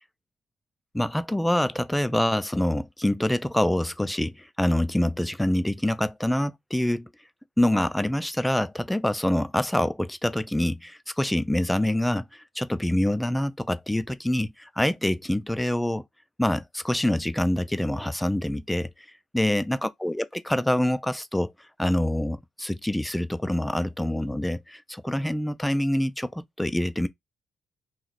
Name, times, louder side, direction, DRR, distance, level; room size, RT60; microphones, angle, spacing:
voice 1, 0.9-7.1 7.6-16.0 16.4-18.9 19.3-21.5 21.8-27.1, left 1 dB, 5° left, 0.4 m, -26 dB
3.1 x 2.4 x 3.9 m
cardioid pair, 90°, 0 cm